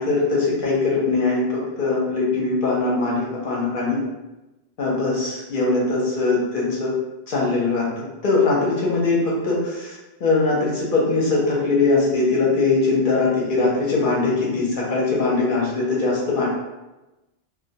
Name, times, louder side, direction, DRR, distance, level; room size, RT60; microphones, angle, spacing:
voice 1, 0.0-4.0 4.8-6.9 7.3-16.5, left 3 dB, 55° left, -4 dB, 0.7 m, -21 dB
2.1 x 2.1 x 2.7 m, 1.0 s
omnidirectional pair, 1.1 m